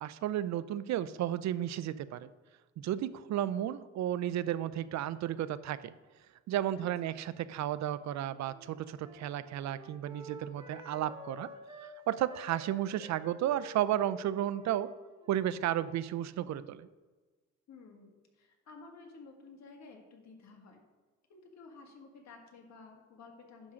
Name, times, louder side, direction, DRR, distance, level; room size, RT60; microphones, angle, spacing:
voice 1, 0.0-2.3 2.8-5.9 6.5-11.5 12.1-14.9 15.3-16.9, right 12 dB, 65° right, 16 dB, 0.5 m, -33 dB
voice 2, 6.7-7.1 17.7-20.8 21.3-23.7, left 4 dB, 65° left, 2 dB, 1.8 m, -53 dB
Wind instrument woodwind instrument, 8.0-12.0 12.3-16.8, right 2 dB, 20° right, 1.8 m, -51 dB
10.0 x 3.7 x 6.2 m, 1.3 s
cardioid pair, 90°, 30 cm